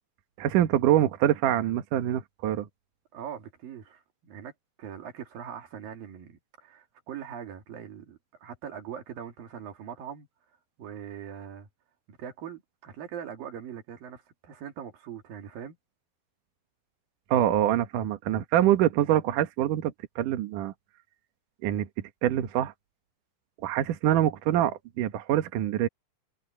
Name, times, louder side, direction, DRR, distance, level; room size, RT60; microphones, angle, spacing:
voice 1, 0.4-2.7 17.3-20.7 21.6-21.9 22.2-22.7 23.6-25.9, right 12 dB, 75° right, 1.9 m, -25 dB
voice 2, 3.1-4.5 4.8-10.3 10.8-11.7 12.1-15.8, right 8 dB, 55° right, 3.7 m, -41 dB
omnidirectional pair, 5.6 m